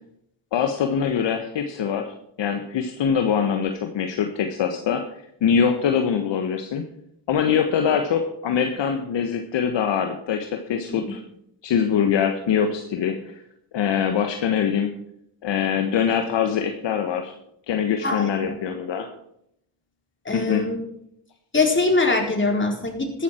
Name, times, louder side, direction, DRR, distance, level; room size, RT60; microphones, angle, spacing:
voice 1, 0.5-2.1 2.4-5.0 5.4-6.8 7.3-11.2 11.6-13.4 13.7-14.9 15.4-17.3 17.7-19.1 20.3-20.6, left 7 dB, 60° left, 6 dB, 1.5 m, -23 dB
voice 2, 18.0-18.6 20.3-20.8 21.5-23.2, left 3 dB, 25° left, 2 dB, 4.1 m, -22 dB
13.5 x 11.5 x 4.5 m, 0.75 s
hypercardioid pair, 55°, 50 cm